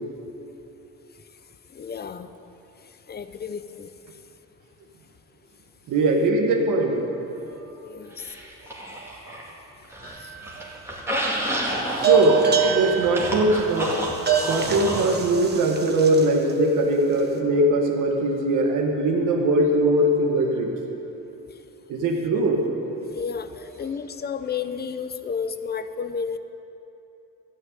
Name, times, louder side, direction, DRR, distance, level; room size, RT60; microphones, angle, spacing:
voice 1, 1.7-2.3 3.1-3.9 7.8-8.2 10.2-10.3 23.1-26.4, left 6 dB, 35° left, 11 dB, 0.7 m, -32 dB
voice 2, 5.9-7.0 7.3-7.8 9.0-9.4 10.4-10.5 12.0-14.0 14.5-20.7 21.9-22.9 24.0-24.1, right 1 dB, 85° right, 1 dB, 1.7 m, -21 dB
sound 1, 8.2-9.5 9.8-15.2, right 1 dB, 10° right, 2.5 m, -30 dB
sound 2, 10.0-10.6 12.0-16.5, right 8 dB, 35° right, 1.4 m, -25 dB
13.5 x 6.3 x 9.3 m, 3.0 s
cardioid pair, 90°, 30 cm